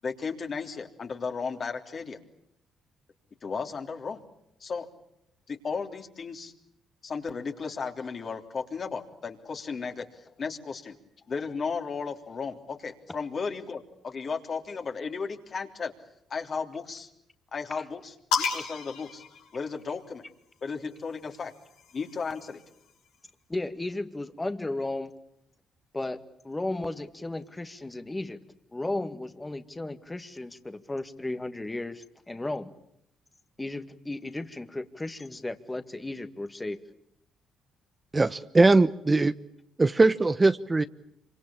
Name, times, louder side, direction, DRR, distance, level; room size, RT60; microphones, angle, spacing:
voice 1, 0.0-2.2 3.4-4.2 4.6-4.9 5.5-6.5 7.0-11.0 11.3-15.9 16.3-17.1 17.5-19.2 19.5-20.2 20.6-21.5 21.9-22.6, left 5 dB, 50° left, 4 dB, 3.4 m, -35 dB
sound 1, 18.3-20.1 21.2-22.9, left 6 dB, 80° left, 4.4 m, -34 dB
voice 2, 23.5-25.1 25.9-26.2 26.4-28.4 28.7-32.7 33.6-36.8, left 2 dB, 20° left, 9 dB, 2.1 m, -34 dB
voice 3, 38.1-39.3 39.8-40.8, right 3 dB, 25° right, 12 dB, 1.1 m, -21 dB
26.5 x 25.0 x 8.7 m, 0.77 s
hypercardioid pair, 50°, 0 cm